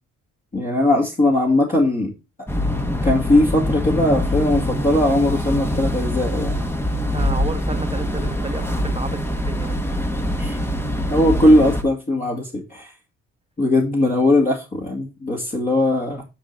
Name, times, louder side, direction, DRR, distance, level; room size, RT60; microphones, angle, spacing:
voice 1, 0.5-2.1 3.0-6.6 10.4-10.6 11.1-12.9 13.6-16.2, left 1 dB, 30° left, 2.0 m, -19 dB
sound 1, 2.5-11.8, left 1 dB, 10° left, 1.2 m, -24 dB
voice 2, 7.1-9.8, right 2 dB, 20° right, 1.2 m, -32 dB
9.9 x 3.9 x 4.5 m
cardioid pair, 90°, 30 cm